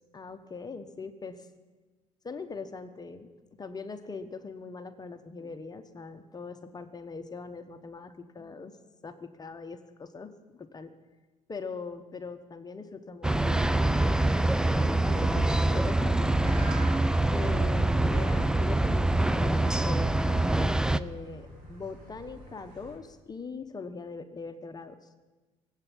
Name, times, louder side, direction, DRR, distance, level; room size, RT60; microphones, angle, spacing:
voice 1, 0.1-1.5 2.2-3.3 3.6-8.8 9.0-10.9 11.5-14.0 14.6-16.6 17.3-20.7 20.9-25.0, left 4 dB, 30° left, 8 dB, 1.2 m, -41 dB
sound 1, 13.2-21.0, right 2 dB, 5° right, 0.5 m, -25 dB
sound 2, 16.4-22.9, right 1 dB, 80° right, 5.2 m, -46 dB
18.0 x 8.4 x 8.8 m, 1.2 s
cardioid pair, 90°, 14 cm